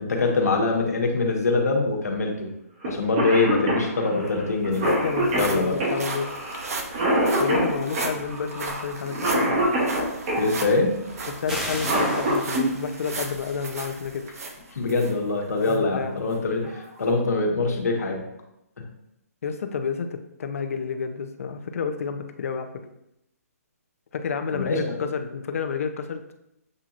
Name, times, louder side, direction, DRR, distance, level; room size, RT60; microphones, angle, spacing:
voice 1, 0.0-2.5 2.8-4.9 5.3-5.8 10.4-11.0 14.7-18.2 24.5-25.0, left 3 dB, 85° left, 1 dB, 1.3 m, -24 dB
Cough, 2.8-2.9 3.2-10.5 11.6-12.7 14.3-14.4 15.4-15.7 16.2-16.3 16.6-17.1, right 1 dB, 35° right, 1.3 m, -25 dB
sound 1, 3.9-4.0 4.3-15.1 15.6-15.8 16.3-16.4, right 3 dB, 65° right, 0.8 m, -36 dB
voice 2, 4.8-6.3 7.4-9.6 11.4-14.3 15.7-16.3 19.4-22.8 24.1-26.2, left 6 dB, 60° left, 6 dB, 0.6 m, -30 dB
sound 2, 11.5-13.1, equal, 5° right, 0.7 m, -34 dB
7.5 x 2.8 x 2.5 m, 0.84 s
hypercardioid pair, 160°, 9 cm